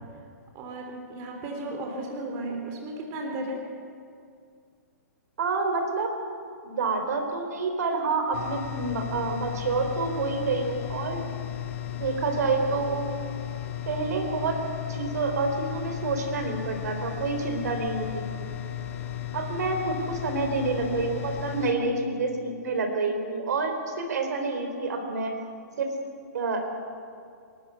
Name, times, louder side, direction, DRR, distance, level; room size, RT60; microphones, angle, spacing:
voice 1, 0.5-3.7 20.5-21.0, right 1 dB, 30° right, 2 dB, 3.2 m, -35 dB
voice 2, 5.4-6.1 6.6-11.2 11.9-13.0 13.9-14.6 14.9-18.5 19.3-25.3 25.8-25.9 26.3-26.8, right 3 dB, 65° right, 5 dB, 3.9 m, -28 dB
sound 1, 8.3-21.7, left 11 dB, 45° left, 1.8 m, -35 dB
26.5 x 12.5 x 8.2 m, 2.3 s
hypercardioid pair, 150°, 10 cm